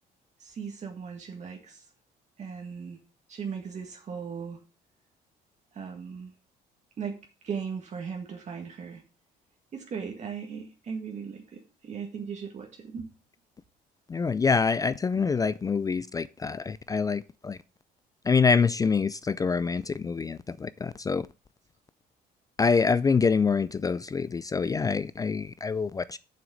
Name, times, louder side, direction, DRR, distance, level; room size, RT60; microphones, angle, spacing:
voice 1, 0.4-1.8 2.4-3.0 3.3-4.6 5.7-6.3 7.0-7.2 7.4-9.0 9.7-13.1 15.1-15.2, right 6 dB, 45° right, 1.8 m, -37 dB
voice 2, 14.1-17.6 18.3-21.2 22.6-26.2, left 5 dB, 20° left, 0.3 m, -26 dB
7.2 x 6.2 x 6.3 m
cardioid pair, 110°, 17 cm